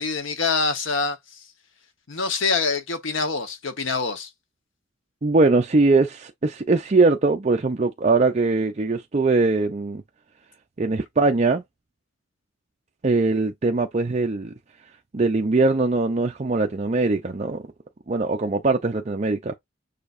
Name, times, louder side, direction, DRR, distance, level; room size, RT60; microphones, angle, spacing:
voice 1, 0.0-1.4 2.1-4.3, left 4 dB, 70° left, 1.1 m, -25 dB
voice 2, 5.2-10.0 10.8-11.6 13.0-14.5 15.1-17.6 18.1-19.5, right 3 dB, 35° right, 0.5 m, -21 dB
6.7 x 2.7 x 2.5 m
head